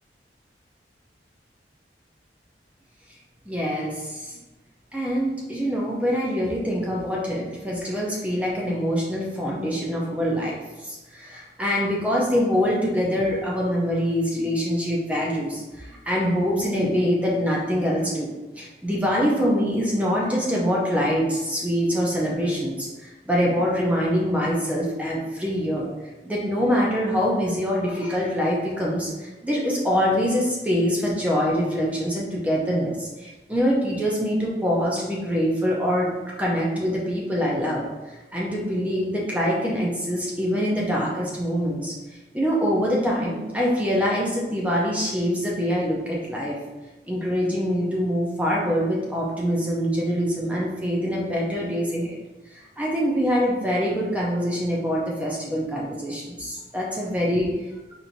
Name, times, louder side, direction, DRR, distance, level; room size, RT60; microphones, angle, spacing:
voice 1, 3.5-4.4 4.9-18.3 18.6-26.0 26.2-36.1 36.4-41.9 42.3-46.6 47.1-52.2 52.5-57.5, equal, 10° right, -4 dB, 0.5 m, -24 dB
4.4 x 2.6 x 2.6 m, 1.1 s
head